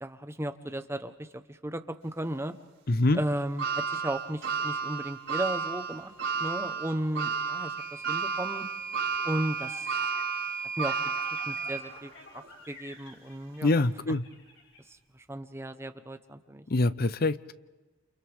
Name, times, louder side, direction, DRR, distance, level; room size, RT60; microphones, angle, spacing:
voice 1, 0.0-2.5 3.1-6.1 6.4-8.7 9.2-10.0 10.6-11.1 11.5-14.2 14.9-16.6, right 1 dB, 15° right, 1.0 m, -35 dB
voice 2, 2.9-3.2 13.6-14.2 16.7-17.5, left 2 dB, 50° left, 0.7 m, -24 dB
sound 1, 3.6-11.9 12.4-12.5 13.7-13.8, right 6 dB, 75° right, 5.5 m, -32 dB
Microwave oven / Alarm, 7.8-11.9, right 5 dB, 30° left, 5.8 m, -37 dB
sound 2, 9.0-14.8, left 2 dB, 75° left, 6.3 m, -51 dB
29.5 x 29.0 x 3.6 m
head